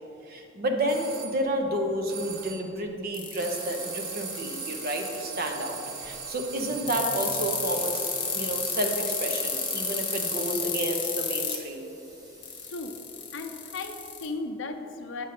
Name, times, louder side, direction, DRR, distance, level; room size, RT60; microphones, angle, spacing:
voice 1, 0.2-11.9, right 1 dB, 50° right, 3 dB, 0.8 m, -30 dB
sound 1, 0.9-1.4 2.1-2.7 3.4-10.7, right 7 dB, 85° right, 0.8 m, -39 dB
sound 2, 3.1-5.2 6.9-11.6 12.4-14.3, left 7 dB, 25° left, 1.0 m, -31 dB
Water tap faucet / Sink (filling or washing) / Liquid, 3.3-7.1 7.5-7.6 7.9-8.0 9.1-13.3 13.9-14.0, equal, 20° right, 1.2 m, -50 dB
voice 2, 12.6-13.0 13.3-15.2, left 3 dB, 65° left, 5 dB, 0.6 m, -36 dB
7.9 x 6.2 x 4.3 m, 2.9 s
head